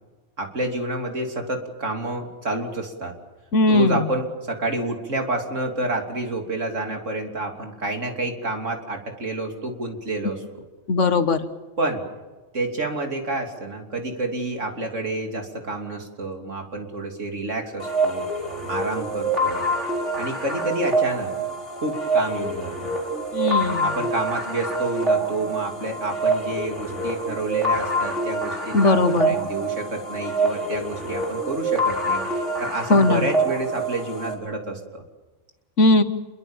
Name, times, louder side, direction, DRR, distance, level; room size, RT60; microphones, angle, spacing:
voice 1, 0.4-3.1 3.7-10.6 11.8-12.0 12.5-18.2 18.7-19.7 20.2-21.3 21.8-22.9 23.8-35.0, right 2 dB, 85° right, 2 dB, 3.6 m, -29 dB
voice 2, 3.5-4.0 10.9-11.4 23.3-23.9 28.7-29.4 32.9-33.3 35.8-36.0, left 2 dB, 75° left, 10 dB, 1.7 m, -18 dB
sound 1, 17.8-34.3, right 2 dB, 70° right, 4.8 m, -26 dB
27.5 x 23.0 x 7.3 m, 1.2 s
omnidirectional pair, 1.3 m